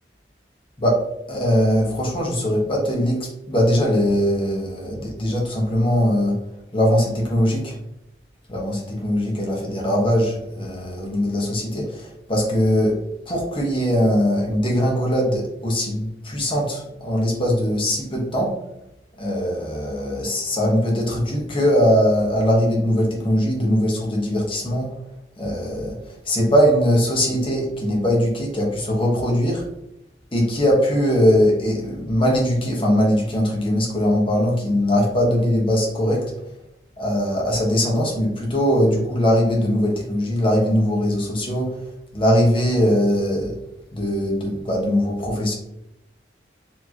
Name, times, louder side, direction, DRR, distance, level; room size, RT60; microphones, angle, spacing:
voice 1, 0.8-6.4 6.7-7.8 8.5-13.0 13.3-18.6 19.2-24.9 25.4-29.7 30.3-36.2 37.0-41.8 42.1-43.5 43.9-45.5, equal, 30° left, -2 dB, 1.1 m, -21 dB
4.5 x 2.9 x 2.9 m, 0.83 s
head